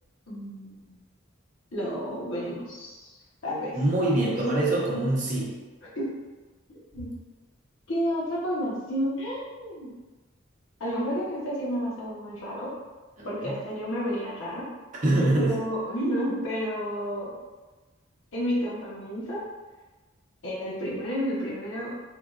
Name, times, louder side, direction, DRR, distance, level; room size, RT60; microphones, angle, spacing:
voice 1, 0.3-1.0 1.7-3.1 3.4-3.8 4.2-4.3 5.9-6.1 6.9-7.1 7.9-9.9 10.8-12.7 13.2-14.7 15.4-17.3 18.3-19.4 20.4-21.9, equal, 75° left, -7 dB, 1.1 m, -31 dB
voice 2, 3.7-5.6 13.2-13.5 15.0-15.6, right 2 dB, 40° right, -5 dB, 0.7 m, -24 dB
3.7 x 2.4 x 2.4 m, 1.2 s
head